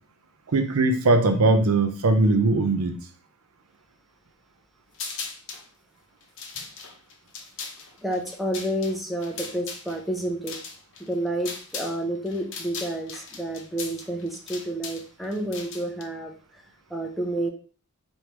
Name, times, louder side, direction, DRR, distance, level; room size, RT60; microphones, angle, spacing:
voice 1, 0.5-3.0, right 2 dB, 70° right, 0.6 m, -20 dB
sound 1, 4.9-5.7 6.2-12.0 12.3-16.0, left 5 dB, 60° left, 0.7 m, -38 dB
voice 2, 8.0-10.6 11.1-16.3 16.9-17.5, right 1 dB, ahead, 0.6 m, -29 dB
3.2 x 2.7 x 4.5 m
head